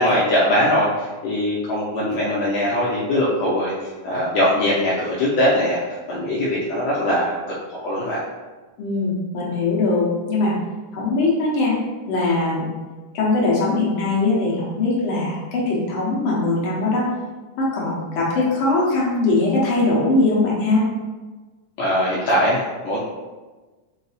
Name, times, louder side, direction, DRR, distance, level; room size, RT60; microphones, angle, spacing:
voice 1, 0.0-3.7 4.0-7.4 7.7-8.2 21.8-23.0, left 1 dB, 85° left, -6 dB, 1.5 m, -21 dB
voice 2, 8.8-10.5 10.9-11.7 12.1-12.8 13.1-17.1 17.6-20.8, left 2 dB, 60° left, -5 dB, 1.4 m, -21 dB
5.2 x 2.0 x 4.0 m, 1.3 s
omnidirectional pair, 3.6 m